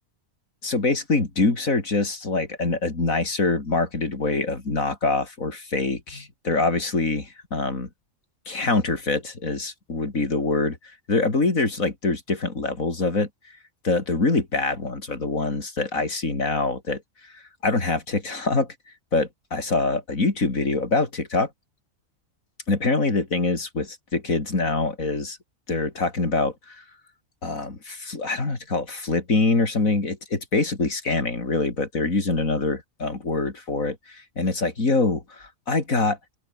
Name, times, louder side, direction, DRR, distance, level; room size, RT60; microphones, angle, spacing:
voice 1, 0.6-7.9 8.5-10.8 11.1-13.3 13.8-17.0 17.3-18.7 19.1-21.5 22.7-25.4 25.7-26.8 27.4-36.4, left 3 dB, 85° left, 4.2 m, -24 dB
open air
omnidirectional pair, 1.4 m